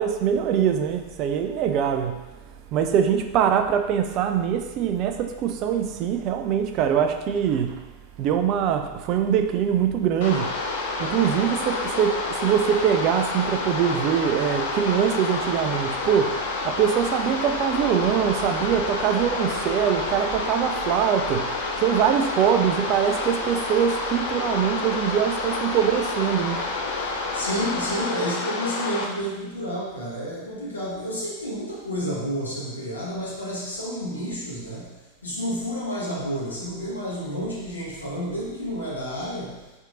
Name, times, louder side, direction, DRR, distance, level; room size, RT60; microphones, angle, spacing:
voice 1, 0.0-2.2 2.7-7.8 8.2-10.5 11.0-16.4 16.6-21.5 21.8-26.6, right 8 dB, 40° right, 6 dB, 0.4 m, -23 dB
sound 1, 10.2-29.0, left 3 dB, 55° left, 0.6 m, -29 dB
voice 2, 27.1-39.8, equal, 80° left, -6 dB, 1.3 m, -30 dB
5.3 x 3.6 x 2.5 m, 1.1 s
figure-of-eight pair, 90°, 0 cm